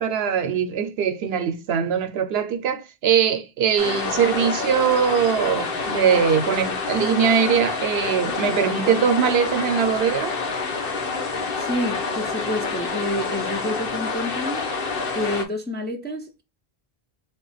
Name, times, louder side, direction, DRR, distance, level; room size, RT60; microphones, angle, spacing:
voice 1, 0.0-10.3, right 7 dB, 80° right, 0.8 m, -21 dB
sound 1, 3.8-15.5, left 4 dB, 65° left, 1.0 m, -27 dB
voice 2, 11.6-14.6 15.1-16.4, left 1 dB, 15° left, 0.4 m, -28 dB
3.5 x 2.2 x 3.9 m
omnidirectional pair, 1.0 m